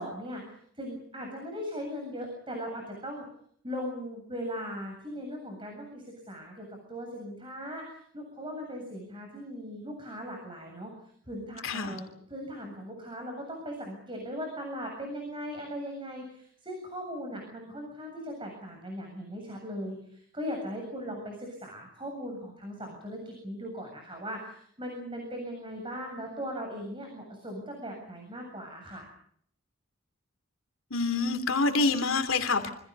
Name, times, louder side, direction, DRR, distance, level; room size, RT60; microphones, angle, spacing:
voice 1, 0.0-3.2 3.6-10.9 11.3-29.1, equal, 25° right, 2 dB, 7.7 m, -39 dB
voice 2, 11.6-12.0 30.9-32.7, left 3 dB, 75° left, 6 dB, 3.0 m, -27 dB
27.5 x 25.5 x 5.5 m, 0.65 s
head